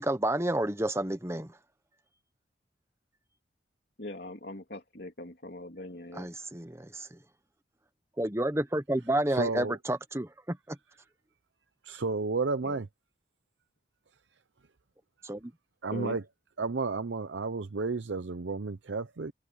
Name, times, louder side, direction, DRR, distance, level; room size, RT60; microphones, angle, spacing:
voice 1, 0.0-1.6 6.1-7.2 8.2-10.8 15.2-15.5, right 1 dB, 15° right, 1.2 m, -30 dB
voice 2, 4.0-6.3 12.6-12.8 15.9-16.2, left 1 dB, 60° left, 3.1 m, -41 dB
voice 3, 9.3-9.8 11.8-12.9 15.8-16.2 16.6-19.3, right 4 dB, 85° right, 0.7 m, -32 dB
open air
head